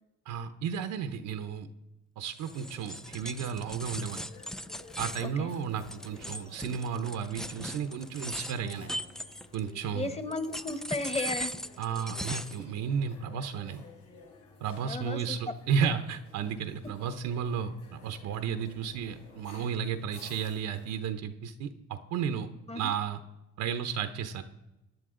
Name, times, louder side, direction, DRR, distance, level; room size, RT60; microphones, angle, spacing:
voice 1, 0.3-1.7 2.2-4.2 5.0-9.0 9.5-10.1 11.8-13.8 14.6-22.5 22.7-23.2 23.6-24.4, right 7 dB, 85° right, 9 dB, 0.9 m, -33 dB
sound 1, 2.4-20.9, left 3 dB, 80° left, 6.2 m, -54 dB
sound 2, 2.4-9.8 10.3-12.7, equal, ahead, 0.4 m, -39 dB
voice 2, 9.9-11.5 14.8-15.5 22.7-22.9, left 2 dB, 20° left, 10 dB, 1.2 m, -34 dB
19.0 x 10.5 x 3.8 m, 0.96 s
cardioid pair, 90°, 30 cm